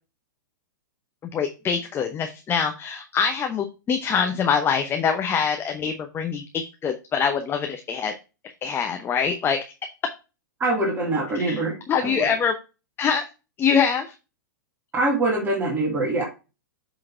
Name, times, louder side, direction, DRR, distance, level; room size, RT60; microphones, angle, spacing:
voice 1, 1.3-8.1 8.6-9.6 11.4-11.6 11.9-12.5 13.0-13.2 13.6-14.1, left 6 dB, 20° left, 6 dB, 0.8 m, -24 dB
voice 2, 10.6-12.4 14.9-16.2, right 2 dB, 20° right, -2 dB, 2.1 m, -24 dB
7.7 x 4.0 x 4.4 m, 0.30 s
hypercardioid pair, 110°, 11 cm